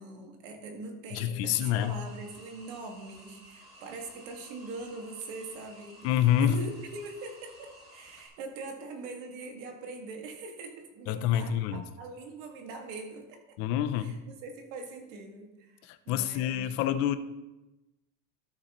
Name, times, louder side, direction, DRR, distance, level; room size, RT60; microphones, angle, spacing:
voice 1, 0.0-6.1 6.4-13.6 14.0-16.7, right 3 dB, 80° right, 3 dB, 1.9 m, -42 dB
voice 2, 1.1-2.0 6.0-6.6 11.1-11.8 13.6-14.2 15.9-17.2, left 10 dB, 40° left, 11 dB, 0.5 m, -27 dB
sound 1, 1.5-8.3, right 1 dB, 15° right, 2.6 m, -54 dB
13.0 x 6.8 x 3.0 m, 1.0 s
cardioid pair, 170°, 38 cm